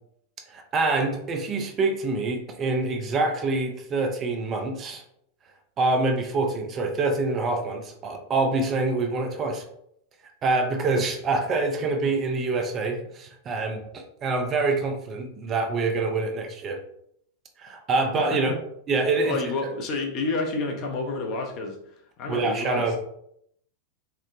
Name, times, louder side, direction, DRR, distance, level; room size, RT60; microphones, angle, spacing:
voice 1, 0.5-5.0 5.8-9.6 10.4-16.8 17.6-18.6 18.9-19.4 22.3-23.0, right 3 dB, 30° right, 4 dB, 0.4 m, -26 dB
voice 2, 18.1-18.6 19.2-23.0, left 3 dB, 40° left, 1 dB, 0.5 m, -30 dB
3.0 x 2.0 x 2.4 m, 0.71 s
figure-of-eight pair, 90°, 0 cm